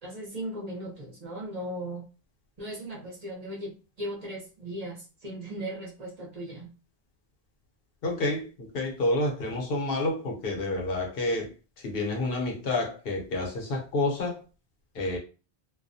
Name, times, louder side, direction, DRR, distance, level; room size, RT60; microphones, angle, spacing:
voice 1, 0.0-2.1 2.6-6.7, right 1 dB, 45° right, 0.8 m, -37 dB
voice 2, 8.0-14.4 14.9-15.2, left 2 dB, 70° left, 0.9 m, -29 dB
2.3 x 2.1 x 2.6 m
omnidirectional pair, 1.0 m